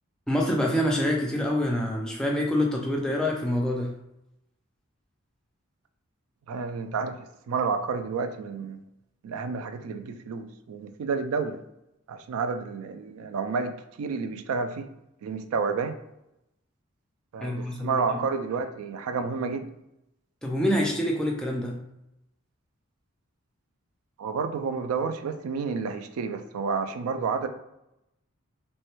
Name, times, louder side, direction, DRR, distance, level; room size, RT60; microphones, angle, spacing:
voice 1, 0.3-3.9 17.4-18.0 20.4-21.8, left 1 dB, 5° left, -2 dB, 0.4 m, -26 dB
voice 2, 6.5-7.2 7.5-8.8 9.2-11.6 12.1-14.9 15.2-16.0 17.3-19.7 24.2-27.5, right 5 dB, 80° right, 8 dB, 0.3 m, -30 dB
3.2 x 2.2 x 3.0 m, 0.86 s
head